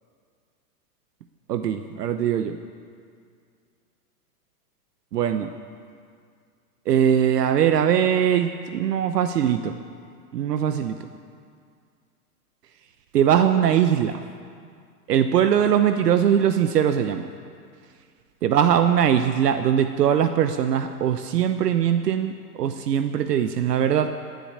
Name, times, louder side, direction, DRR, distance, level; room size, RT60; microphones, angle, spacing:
voice 1, 1.5-2.6 5.1-5.5 6.9-9.7 10.3-11.0 13.1-14.2 15.1-17.3 18.4-24.1, right 9 dB, 80° right, 9 dB, 1.0 m, -21 dB
17.0 x 7.9 x 9.7 m, 2.2 s
hypercardioid pair, 135°, 47 cm